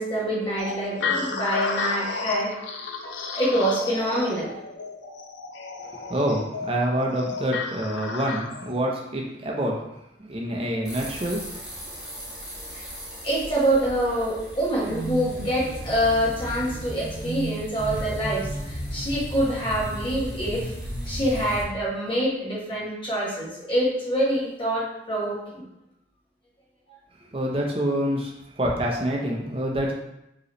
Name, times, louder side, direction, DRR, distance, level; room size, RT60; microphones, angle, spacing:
voice 1, 0.0-2.6 3.3-4.5 12.7-12.8 13.2-20.7 21.0-25.6, right 1 dB, 25° left, -6 dB, 1.4 m, -26 dB
sound 1, 0.6-8.8, left 4 dB, 85° left, 0.5 m, -32 dB
voice 2, 6.1-9.8 10.2-11.4 27.3-29.9, right 1 dB, 30° right, -1 dB, 0.7 m, -26 dB
sound 2, 10.8-21.6, right 1 dB, 5° right, 1.4 m, -35 dB
5.1 x 3.1 x 3.1 m, 0.86 s
head